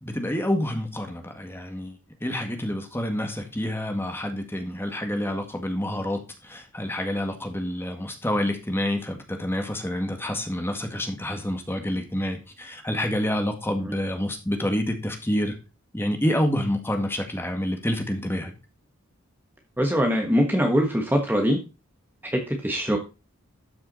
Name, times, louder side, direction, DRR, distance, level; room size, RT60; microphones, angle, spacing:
voice 1, 0.0-15.6 15.9-18.5, left 1 dB, 10° left, 4 dB, 1.9 m, -28 dB
voice 2, 19.8-21.6 22.3-23.0, equal, 10° right, 2 dB, 1.3 m, -22 dB
13.0 x 6.1 x 4.1 m, 0.29 s
head